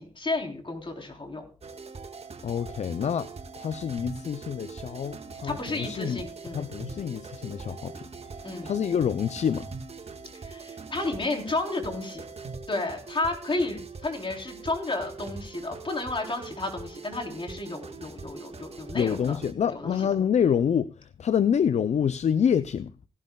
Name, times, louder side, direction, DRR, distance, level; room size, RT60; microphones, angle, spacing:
voice 1, 0.0-1.4 5.4-6.7 8.4-8.7 10.4-12.3 12.7-19.4 19.7-20.0, left 2 dB, 45° left, 3.8 m, -32 dB
sound 1, 1.6-19.5, right 4 dB, 60° right, 1.6 m, -42 dB
voice 2, 2.4-3.3 3.6-6.2 6.5-7.9 8.6-9.7 18.9-20.9 21.2-22.9, left 8 dB, 70° left, 0.5 m, -26 dB
17.0 x 12.0 x 2.3 m
cardioid pair, 45°, 12 cm